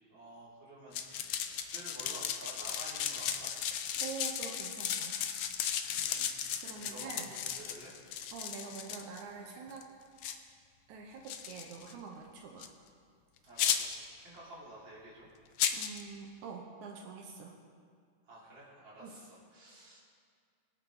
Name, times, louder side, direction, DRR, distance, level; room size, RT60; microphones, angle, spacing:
voice 1, 0.1-3.5 5.9-6.4 6.7-8.0 13.4-15.3 18.2-20.0, right 1 dB, 40° right, -7 dB, 4.0 m, -51 dB
sound 1, 0.9-9.2 9.7-9.8 10.2-10.4 11.3-11.9 12.6-12.7 13.6-14.1 15.6-16.0, left 9 dB, 75° left, 1.3 m, -35 dB
voice 2, 4.0-5.2 6.6-7.3 8.3-9.9 10.9-12.7 15.7-17.5 19.0-19.2, right 5 dB, 85° right, 1 dB, 2.4 m, -45 dB
23.0 x 8.9 x 4.0 m, 2.2 s
omnidirectional pair, 3.3 m